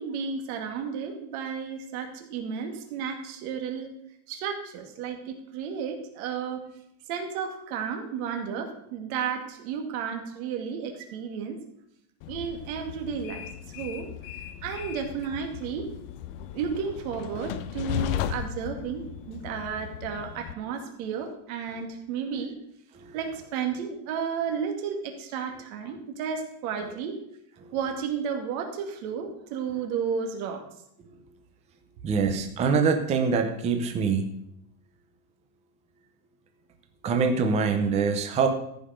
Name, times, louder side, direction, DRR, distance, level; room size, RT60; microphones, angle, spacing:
voice 1, 0.0-3.9 4.3-6.6 7.1-11.6 12.3-13.4 13.7-14.1 14.6-15.9 16.5-22.5 23.1-27.2 27.7-30.6, right 6 dB, 55° right, 3 dB, 2.4 m, -32 dB
Train, 12.2-20.5, left 10 dB, 35° left, 0.4 m, -36 dB
voice 2, 32.0-34.3 37.0-38.5, right 5 dB, 15° right, 6 dB, 0.6 m, -24 dB
14.0 x 5.9 x 6.4 m, 0.75 s
supercardioid pair, 165°, 49 cm